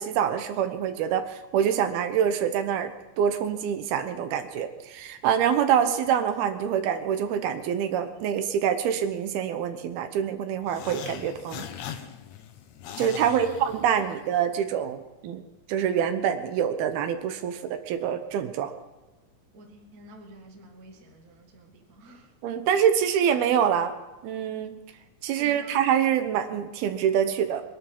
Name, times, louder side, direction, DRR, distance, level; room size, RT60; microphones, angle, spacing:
voice 1, 0.0-11.7 13.0-15.4 15.7-17.6 17.9-18.7 22.4-23.9 24.2-24.8 25.2-27.6, right 8 dB, 80° right, 9 dB, 2.9 m, -25 dB
sound 1, 10.6-14.4, left 9 dB, 70° left, 1.7 m, -40 dB
voice 2, 13.2-13.6 19.5-22.3 25.4-25.8, right 1 dB, 35° right, 4 dB, 1.6 m, -48 dB
22.0 x 11.5 x 5.5 m, 1.1 s
omnidirectional pair, 4.4 m